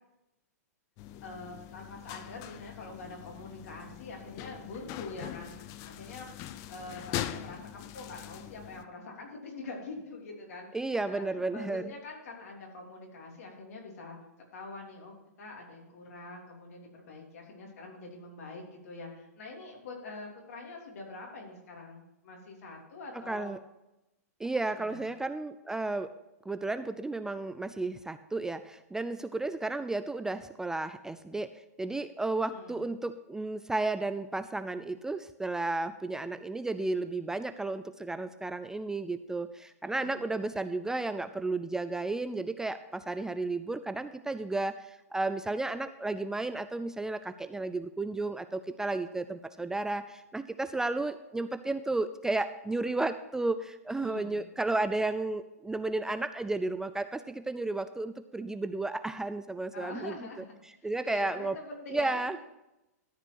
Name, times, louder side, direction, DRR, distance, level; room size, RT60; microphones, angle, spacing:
sound 1, 1.0-8.8, left 12 dB, 40° left, 0.6 m, -42 dB
voice 1, 1.2-6.3 6.7-14.2 14.5-23.5 24.7-25.0 32.5-32.8 39.8-40.4 54.0-54.4 59.7-60.5 60.8-62.2, left 3 dB, 65° left, -1 dB, 3.4 m, -45 dB
voice 2, 10.7-11.9 23.3-23.6 24.4-26.1 26.5-60.1 60.8-61.6 61.9-62.4, right 2 dB, 5° right, 11 dB, 0.3 m, -33 dB
13.0 x 5.0 x 6.4 m, 0.93 s
hypercardioid pair, 120°, 9 cm